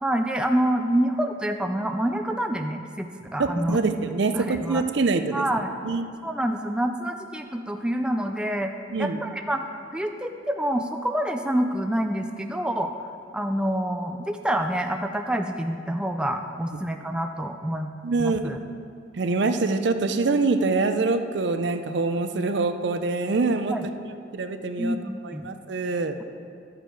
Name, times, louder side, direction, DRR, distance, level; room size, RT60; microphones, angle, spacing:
voice 1, 0.0-3.8 4.3-4.8 5.3-5.7 6.2-8.7 9.0-9.6 9.9-12.9 13.3-17.9 18.2-18.6 23.7-23.9 24.8-25.4, right 1 dB, 5° right, 5 dB, 0.3 m, -27 dB
voice 2, 3.4-5.4 5.8-6.1 8.9-9.2 18.0-18.5 19.2-23.8 24.3-25.0 25.2-26.2, right 3 dB, 65° right, 8 dB, 0.5 m, -25 dB
11.5 x 6.9 x 4.6 m, 2.5 s
head